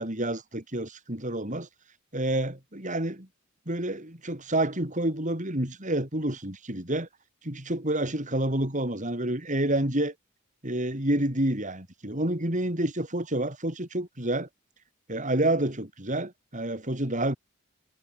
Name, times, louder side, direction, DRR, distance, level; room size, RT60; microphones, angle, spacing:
voice 1, 0.0-1.7 2.1-3.3 3.7-7.1 7.4-10.1 10.6-14.5 15.1-17.4, right 1 dB, 35° right, 5.6 m, -28 dB
head